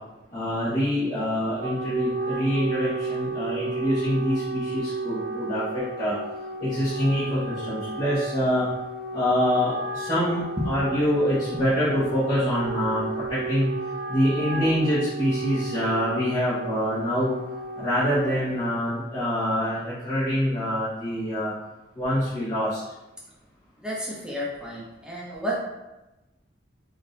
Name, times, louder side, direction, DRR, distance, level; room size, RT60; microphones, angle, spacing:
voice 1, 0.3-6.1 6.6-8.6 9.1-13.7 14.1-17.3 17.8-21.5 21.9-22.8, equal, 30° left, -12 dB, 1.3 m, -25 dB
Wind instrument woodwind instrument, 1.3-18.8, right 3 dB, 55° right, 0.5 m, -33 dB
voice 2, 23.8-25.6, equal, 5° right, -6 dB, 0.6 m, -31 dB
3.7 x 2.6 x 3.9 m, 1.0 s
head